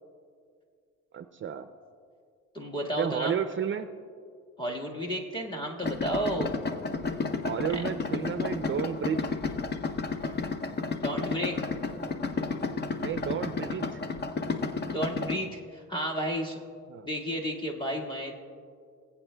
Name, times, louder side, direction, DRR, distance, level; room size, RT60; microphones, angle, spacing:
voice 1, 1.1-1.7 3.0-3.9 7.4-9.3 13.0-14.0 16.9-17.1, right 8 dB, 40° right, 9 dB, 0.5 m, -32 dB
voice 2, 2.5-3.4 4.6-6.5 7.7-7.8 11.0-11.7 14.8-16.6 17.0-18.3, equal, 15° left, 0 dB, 1.6 m, -32 dB
Idling, 5.8-15.4, left 4 dB, 35° left, 0.7 m, -32 dB
22.0 x 8.3 x 2.2 m, 2.2 s
cardioid pair, 90°, 30 cm